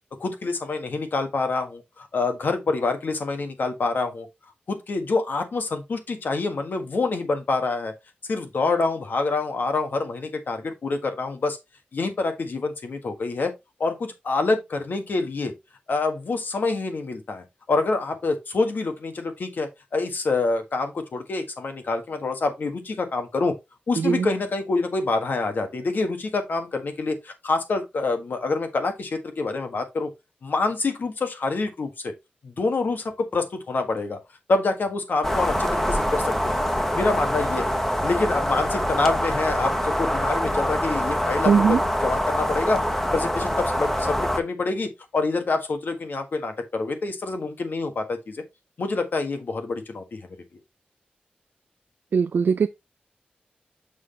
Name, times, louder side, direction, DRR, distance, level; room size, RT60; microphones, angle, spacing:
voice 1, 0.2-4.3 4.7-7.9 8.3-11.6 11.9-13.5 13.8-15.5 15.9-23.5 23.9-30.1 30.4-32.1 32.4-34.2 34.5-36.6 36.9-37.7 38.0-42.8 43.1-48.4 48.8-50.4, left 3 dB, 75° left, 1.5 m, -26 dB
voice 2, 24.0-24.3 41.5-41.8 52.1-52.7, right 6 dB, 85° right, 0.3 m, -20 dB
sound 1, 35.2-44.4, equal, 10° left, 1.0 m, -25 dB
6.3 x 5.8 x 3.3 m
wide cardioid pair, 110°, 3 cm